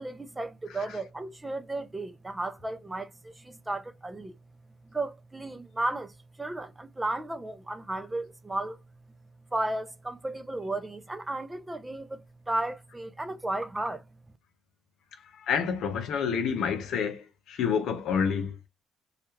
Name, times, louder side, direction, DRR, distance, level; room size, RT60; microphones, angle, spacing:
voice 1, 0.0-4.3 4.9-6.1 6.4-8.8 9.5-14.0, right 2 dB, 20° right, 0.5 m, -34 dB
voice 2, 15.3-18.5, left 6 dB, 70° left, 0.7 m, -28 dB
2.4 x 2.1 x 3.0 m
supercardioid pair, 60°, 0 cm